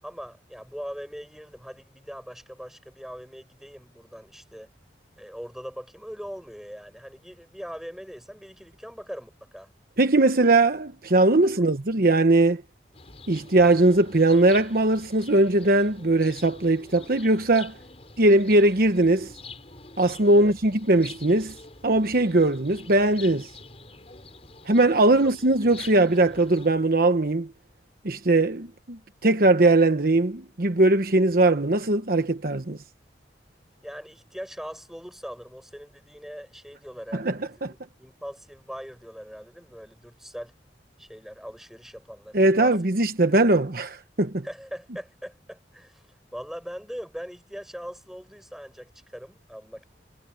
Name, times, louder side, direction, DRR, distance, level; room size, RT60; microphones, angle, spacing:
voice 1, 0.0-4.7 5.2-9.7 20.3-20.5 25.1-25.3 33.8-40.5 41.0-42.8 44.4-49.9, equal, ahead, 7.6 m, -41 dB
voice 2, 10.0-12.6 13.3-17.7 18.2-19.3 20.0-21.5 21.8-23.5 24.7-27.5 28.0-32.8 37.1-37.7 42.3-44.4, right 2 dB, 55° right, 1.1 m, -20 dB
sound 1, 12.9-26.7, left 4 dB, 35° left, 7.3 m, -46 dB
head